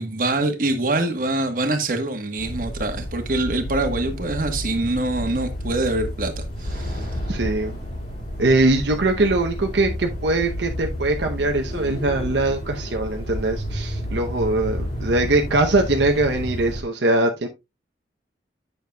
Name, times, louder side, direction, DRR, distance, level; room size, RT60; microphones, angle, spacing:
voice 1, 0.0-7.1, right 2 dB, 50° right, 1.3 m, -24 dB
sound 1, 2.4-16.8, equal, 40° left, 2.6 m, -31 dB
voice 2, 7.3-7.8 8.4-17.5, right 2 dB, 75° right, 0.8 m, -21 dB
9.2 x 6.7 x 2.3 m
head